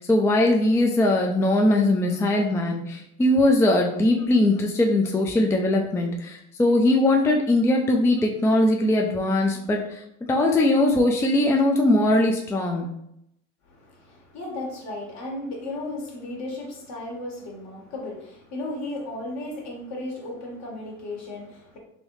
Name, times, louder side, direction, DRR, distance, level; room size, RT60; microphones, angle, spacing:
voice 1, 0.0-10.0 10.3-12.9, left 1 dB, 10° left, 1 dB, 0.4 m, -21 dB
voice 2, 13.6-21.8, left 2 dB, 55° left, -1 dB, 1.5 m, -35 dB
3.3 x 2.6 x 3.1 m, 0.77 s
hypercardioid pair, 80°, 34 cm